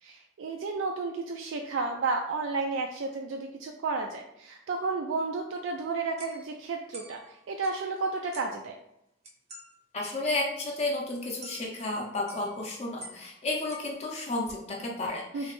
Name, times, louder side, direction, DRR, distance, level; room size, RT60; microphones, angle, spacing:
voice 1, 0.0-8.7 15.3-15.5, right 3 dB, 75° right, 2 dB, 0.3 m, -32 dB
sound 1, 5.5-5.7 6.2-8.1 8.3-8.7 9.2-9.7 10.0-10.1 10.4-10.5 10.7-10.8 11.4-12.0 12.3-13.4 13.6-14.4, right 1 dB, 35° right, 0.6 m, -49 dB
voice 2, 9.9-15.5, left 2 dB, 35° left, -1 dB, 0.5 m, -32 dB
3.2 x 2.9 x 3.0 m, 0.82 s
head